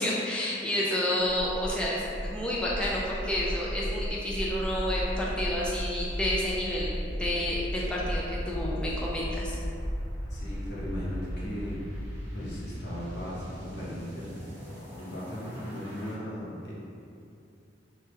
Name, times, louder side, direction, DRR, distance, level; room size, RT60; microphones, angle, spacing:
voice 1, 0.0-9.6, left 1 dB, 5° left, -6 dB, 0.4 m, -30 dB
sound 1, 1.2-16.1, equal, 30° right, 1.3 m, -36 dB
voice 2, 10.3-12.0 12.3-16.7, equal, 60° left, -7 dB, 0.7 m, -38 dB
3.0 x 2.2 x 3.3 m, 2.6 s
head